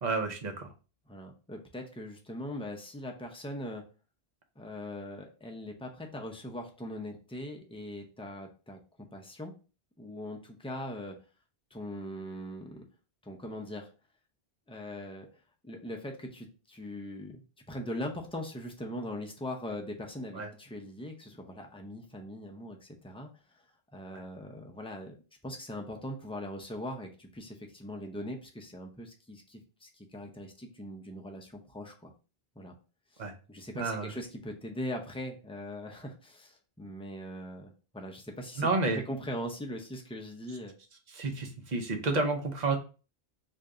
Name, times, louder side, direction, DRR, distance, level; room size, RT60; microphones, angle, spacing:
voice 1, 0.0-0.7 20.3-20.5 33.2-33.3 33.7-34.1 38.6-39.0 41.1-42.8, right 3 dB, 45° right, 4 dB, 0.8 m, -30 dB
voice 2, 1.1-3.8 4.6-8.8 9.1-9.5 10.0-11.1 11.7-12.8 13.2-13.9 14.7-15.3 15.6-17.4 17.7-23.3 23.9-25.2 25.4-32.1 32.6-32.7 33.1-38.7 38.9-40.7, left 1 dB, 5° left, 2 dB, 0.5 m, -41 dB
3.3 x 2.6 x 3.7 m, 0.34 s
omnidirectional pair, 1.1 m